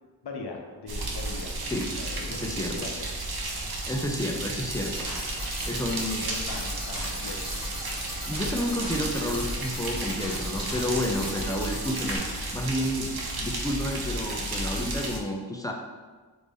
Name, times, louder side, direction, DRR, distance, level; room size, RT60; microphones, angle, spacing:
voice 1, 0.2-1.5 1.9-3.0 5.9-7.5, left 3 dB, 65° left, 2 dB, 0.6 m, -40 dB
sound 1, 0.9-15.2, right 2 dB, 60° right, 0.5 m, -33 dB
voice 2, 2.2-2.8 3.9-5.1 5.7-6.3 8.2-12.2 12.5-13.1 13.4-15.7, left 1 dB, 10° left, 0 dB, 0.4 m, -30 dB
sound 2, 4.7-12.2, equal, 15° right, 1.0 m, -37 dB
3.3 x 2.6 x 3.4 m, 1.4 s
wide cardioid pair, 55°, 43 cm